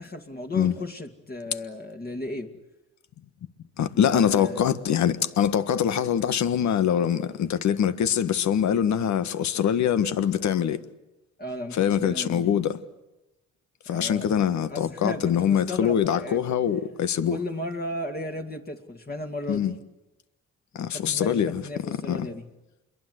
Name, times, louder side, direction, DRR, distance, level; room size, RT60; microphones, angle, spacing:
voice 1, 0.0-2.5 4.0-4.8 11.4-12.5 13.9-14.3 14.7-16.5 17.3-19.7 20.7-22.5, left 1 dB, 30° left, 2.4 m, -35 dB
voice 2, 3.8-10.8 11.7-12.8 13.9-17.4 19.5-19.7 20.7-22.3, left 9 dB, 65° left, 1.5 m, -24 dB
27.5 x 22.0 x 8.0 m
cardioid pair, 90°, 30 cm